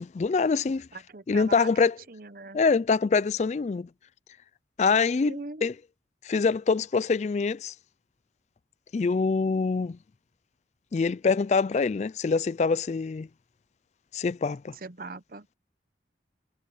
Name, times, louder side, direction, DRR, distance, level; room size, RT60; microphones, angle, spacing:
voice 1, 0.0-0.9 1.3-1.9 2.5-3.9 4.8-5.7 6.2-7.7 8.9-10.0 10.9-13.3 14.1-14.7, left 4 dB, 40° left, 0.3 m, -25 dB
voice 2, 0.9-2.6 5.2-5.6 14.7-15.5, right 3 dB, 50° right, 0.8 m, -41 dB
head